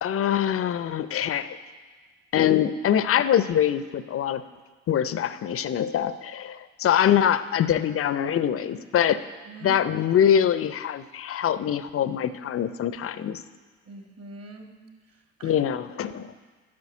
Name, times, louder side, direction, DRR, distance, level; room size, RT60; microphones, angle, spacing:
voice 1, 0.0-1.6 2.3-4.4 4.9-9.2 9.6-13.4 15.4-16.3, left 9 dB, 35° left, 14 dB, 0.6 m, -24 dB
voice 2, 9.4-9.8 13.8-14.7 15.1-15.6, right 3 dB, 40° right, 3 dB, 1.8 m, -43 dB
9.6 x 6.2 x 7.1 m, 1.4 s
hypercardioid pair, 50°, 38 cm